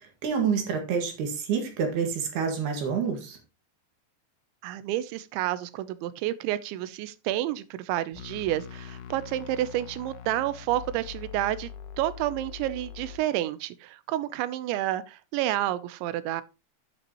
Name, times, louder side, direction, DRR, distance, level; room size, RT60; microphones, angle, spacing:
voice 1, 0.2-3.4, right 6 dB, 65° right, 3.6 m, -28 dB
voice 2, 4.6-11.7 12.0-16.4, right 14 dB, 90° right, 3.1 m, -30 dB
sound 1, 8.1-13.2, left 7 dB, 75° left, 2.1 m, -43 dB
10.5 x 8.0 x 3.0 m
omnidirectional pair, 5.1 m